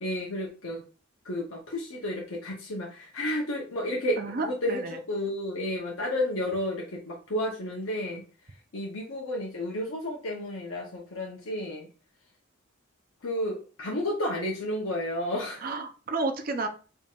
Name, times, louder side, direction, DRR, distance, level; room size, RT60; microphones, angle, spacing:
voice 1, 0.0-0.8 1.2-8.2 8.7-11.9 13.2-15.7, left 1 dB, 70° left, -1 dB, 0.9 m, -32 dB
voice 2, 4.2-5.0 15.6-16.7, right 3 dB, 40° right, 7 dB, 0.6 m, -31 dB
4.5 x 3.6 x 2.4 m, 0.36 s
head